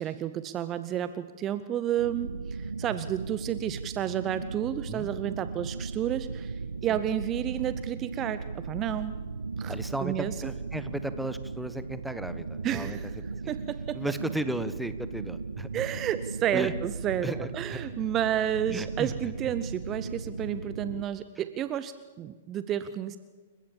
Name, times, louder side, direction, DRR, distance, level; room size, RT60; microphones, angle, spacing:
voice 1, 0.0-9.1 9.6-9.7 10.0-10.3 12.6-13.1 13.5-14.0 15.7-23.2, right 10 dB, 25° right, 13 dB, 0.8 m, -31 dB
sound 1, 2.0-21.0, right 4 dB, 80° right, 0.6 m, -37 dB
voice 2, 9.7-13.0 13.4-13.5 13.9-15.8 16.5-16.7 17.2-17.8 18.7-19.3, right 1 dB, 5° right, 12 dB, 1.2 m, -35 dB
29.0 x 15.0 x 7.3 m, 1.4 s
figure-of-eight pair, 110°, 0 cm